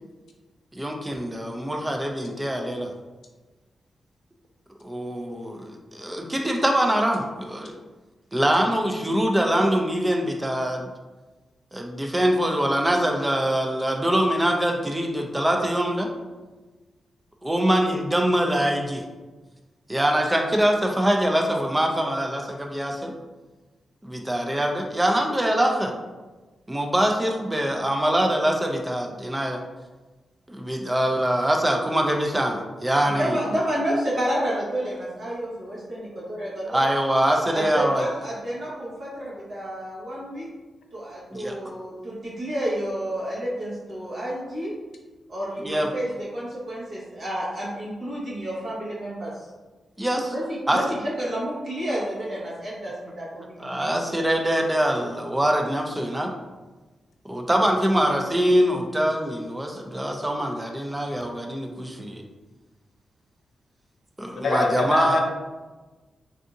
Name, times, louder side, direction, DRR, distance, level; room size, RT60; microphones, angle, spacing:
voice 1, 0.7-2.9 4.8-7.7 8.3-10.9 11.7-16.1 17.4-19.0 19.9-23.1 24.0-25.9 26.7-29.6 30.5-33.4 36.7-38.0 41.3-41.6 45.6-45.9 50.0-50.3 50.7-50.8 53.6-56.3 57.2-62.2 64.2-65.2, right 1 dB, 10° right, 3 dB, 0.3 m, -23 dB
voice 2, 33.0-36.8 37.5-40.5 40.9-44.7 45.3-49.5 50.3-53.7, right 1 dB, 50° right, -7 dB, 1.1 m, -30 dB
voice 3, 64.3-65.2, left 3 dB, 80° left, 1 dB, 0.5 m, -24 dB
3.5 x 2.6 x 2.6 m, 1.2 s
wide cardioid pair, 175°, 0 cm